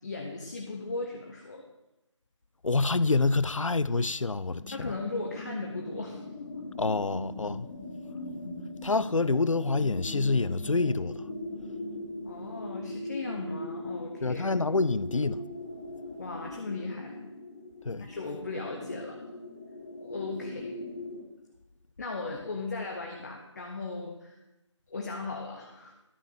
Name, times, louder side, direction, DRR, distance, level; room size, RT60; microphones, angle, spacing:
voice 1, 0.0-1.6 4.7-6.7 8.1-8.5 12.2-14.5 16.2-17.2 18.0-19.2 20.0-20.8 22.0-24.4 24.9-25.9, left 3 dB, 35° left, 1.1 m, -37 dB
voice 2, 2.6-4.9 6.8-7.7 8.8-11.2 14.2-15.4 17.9-18.1, left 3 dB, 85° left, 0.5 m, -27 dB
sound 1, 4.6-21.2, left 2 dB, 10° left, 0.5 m, -40 dB
12.5 x 5.7 x 6.5 m
figure-of-eight pair, 155°, 16 cm